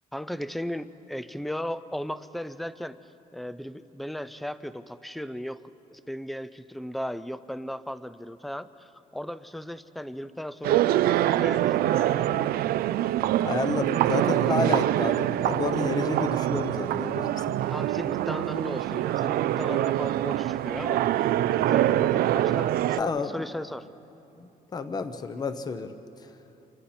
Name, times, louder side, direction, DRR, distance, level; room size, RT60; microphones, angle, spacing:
voice 1, 0.1-3.0 3.3-5.6 5.9-10.9 11.2-12.5 17.7-23.9, equal, ahead, 14 dB, 0.4 m, -36 dB
sound 1, 10.6-23.0, right 13 dB, 85° right, 0.5 m, -25 dB
voice 2, 13.4-17.6 23.0-23.4 24.4-25.9, left 4 dB, 25° left, 9 dB, 0.8 m, -30 dB
28.5 x 24.0 x 4.4 m, 2.9 s
cardioid pair, 175°, 15 cm